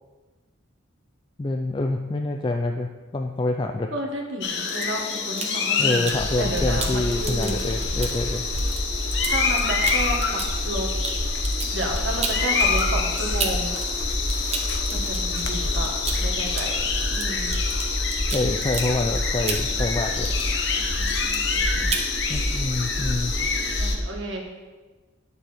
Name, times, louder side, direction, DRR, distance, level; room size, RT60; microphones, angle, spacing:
voice 1, 1.4-3.9 5.8-8.4 18.3-20.4 22.3-23.3, left 2 dB, 25° left, 4 dB, 0.3 m, -26 dB
voice 2, 3.9-6.0 6.4-7.6 9.2-10.9 11.7-13.7 14.9-16.8 17.1-17.5 20.7-21.9 23.7-24.4, right 1 dB, 65° right, 1 dB, 1.6 m, -32 dB
sound 1, 4.4-24.0, left 5 dB, 55° left, 1.0 m, -27 dB
sound 2, 4.5-6.2 6.6-13.8 14.1-20.7 20.9-21.6 21.9-22.1, right 4 dB, 30° right, 0.9 m, -33 dB
sound 3, 6.1-24.0, equal, 85° right, 1.7 m, -29 dB
9.3 x 6.9 x 4.5 m, 1.3 s
head